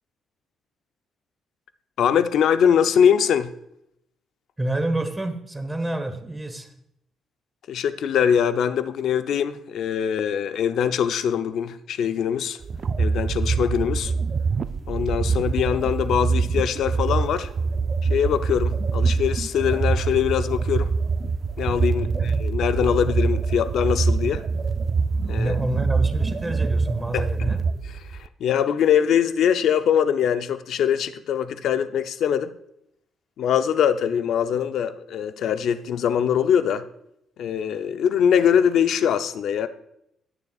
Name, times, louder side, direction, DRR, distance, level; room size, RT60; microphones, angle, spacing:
voice 1, 2.0-3.5 7.7-12.6 13.0-14.1 14.9-17.5 18.1-20.9 21.6-24.4 25.3-25.5 27.1-27.5 28.2-32.5 33.4-36.8 37.4-39.7, left 8 dB, 70° left, 10 dB, 0.6 m, -22 dB
voice 2, 4.6-6.7 22.0-22.3 25.3-27.6, right 1 dB, 10° right, 7 dB, 1.1 m, -28 dB
sound 1, 12.6-28.3, right 4 dB, 40° right, 0.4 m, -24 dB
18.5 x 6.8 x 2.4 m, 0.78 s
cardioid pair, 130°, 0 cm